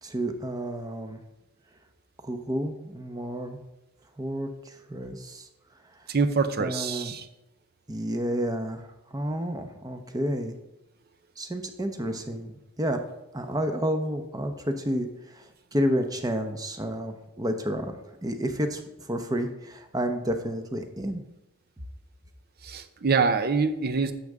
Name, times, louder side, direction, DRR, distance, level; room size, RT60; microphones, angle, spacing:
voice 1, 0.0-1.2 2.2-3.6 4.2-5.5 6.6-7.2 7.9-10.6 11.4-13.0 13.3-21.2, equal, 20° right, 6 dB, 0.8 m, -30 dB
voice 2, 6.1-7.3 22.6-24.1, right 4 dB, 50° right, 10 dB, 0.6 m, -25 dB
11.5 x 6.6 x 3.6 m, 0.92 s
head